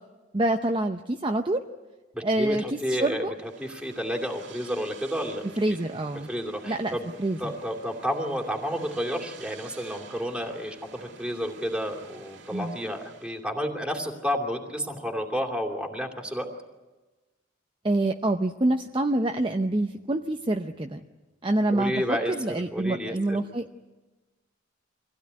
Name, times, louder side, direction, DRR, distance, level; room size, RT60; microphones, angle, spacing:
voice 1, 0.3-1.6 2.2-3.3 5.6-6.3 6.6-7.5 12.5-12.8 17.8-21.0 21.4-23.6, right 2 dB, 25° right, 4 dB, 0.8 m, -26 dB
voice 2, 2.1-5.8 6.3-7.1 7.4-16.5 21.7-23.4, equal, 5° right, 2 dB, 2.7 m, -31 dB
sound 1, 3.3-13.5, right 4 dB, 70° right, 2.4 m, -49 dB
24.5 x 16.5 x 9.6 m, 1.2 s
head